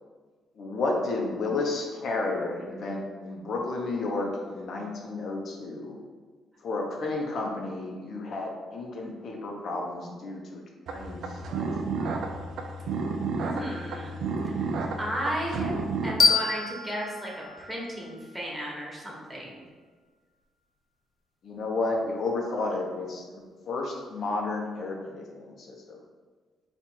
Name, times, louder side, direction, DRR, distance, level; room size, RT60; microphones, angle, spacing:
voice 1, 0.6-6.0 6.6-10.6 10.9-11.5 21.4-26.0, left 3 dB, 60° left, 0 dB, 0.9 m, -32 dB
sound 1, 10.9-16.1, right 4 dB, 70° right, 0.5 m, -31 dB
voice 2, 13.4-14.2 14.4-15.7 16.0-19.5, equal, 5° right, -4 dB, 1.3 m, -34 dB
sound 2, 16.2-19.0, left 4 dB, 40° left, 0.6 m, -28 dB
4.2 x 2.6 x 4.5 m, 1.4 s
cardioid pair, 90°, 0 cm